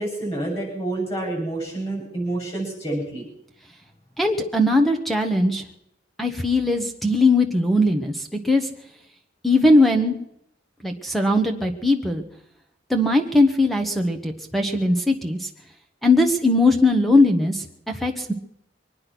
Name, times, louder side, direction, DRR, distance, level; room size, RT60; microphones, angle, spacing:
voice 1, 0.0-3.3, right 2 dB, 30° left, 0 dB, 7.6 m, -28 dB
voice 2, 4.2-5.6 6.2-8.7 9.4-10.1 10.8-12.2 12.9-15.5 16.0-17.6 18.0-18.3, left 2 dB, ahead, 4 dB, 1.1 m, -19 dB
23.5 x 9.8 x 6.1 m, 0.76 s
head